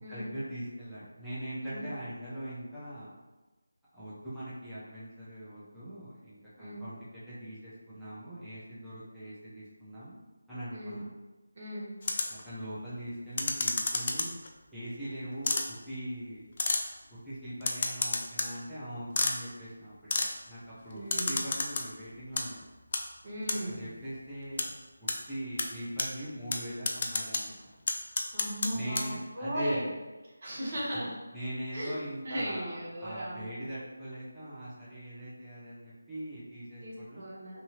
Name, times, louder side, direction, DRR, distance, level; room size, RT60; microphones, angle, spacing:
voice 1, 0.1-3.1 3.9-10.1 10.5-11.1 12.3-14.3 14.7-16.5 17.1-22.7 23.6-24.7 25.0-27.7 28.7-29.9 31.3-37.2, equal, 5° right, -14 dB, 0.6 m, -41 dB
voice 2, 11.5-11.9 20.9-21.4 23.2-23.9 28.3-29.9 30.4-31.1 31.7-32.0 32.2-33.5 36.8-37.6, equal, 40° right, -5 dB, 0.9 m, -37 dB
sound 1, 12.0-12.4 13.4-14.5 15.4-15.7 16.6-16.8 17.6-18.5 19.2-19.4 20.1-20.3 21.1-21.8 22.2-22.4 22.9-23.0 23.5-23.6 24.6-24.7 25.1-25.2 25.6-25.7 26.0-26.1 26.5-26.6 26.9-27.4 27.9-28.7 29.0-29.1, left 3 dB, 40° left, 0.3 m, -29 dB
2.7 x 2.7 x 2.7 m, 1.2 s
figure-of-eight pair, 160°, 0 cm